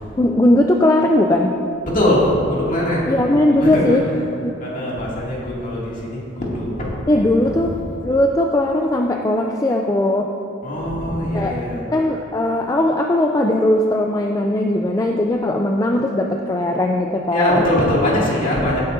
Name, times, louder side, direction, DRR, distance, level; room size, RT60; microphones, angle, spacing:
voice 1, 0.2-1.5 3.1-4.0 4.4-4.5 7.1-7.8 8.0-10.3 11.3-11.5 11.9-17.6, left 1 dB, 15° left, 2 dB, 0.3 m, -18 dB
voice 2, 1.9-4.0 4.6-7.7 10.6-11.8 17.3-18.8, left 1 dB, 40° left, -5 dB, 2.4 m, -22 dB
17.0 x 9.5 x 2.6 m, 2.7 s
head